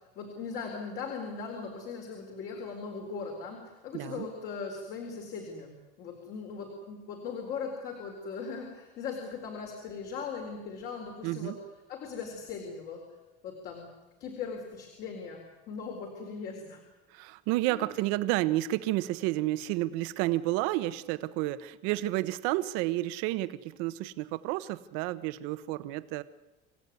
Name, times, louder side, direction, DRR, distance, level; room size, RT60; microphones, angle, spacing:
voice 1, 0.2-11.6 11.9-13.0 13.4-13.9 14.2-16.8 17.7-17.9, left 5 dB, 50° left, 2 dB, 4.2 m, -39 dB
voice 2, 3.9-4.3 11.2-11.5 17.1-26.2, right 17 dB, 80° right, 13 dB, 1.2 m, -31 dB
27.5 x 16.5 x 9.6 m, 1.1 s
cardioid pair, 175°, 21 cm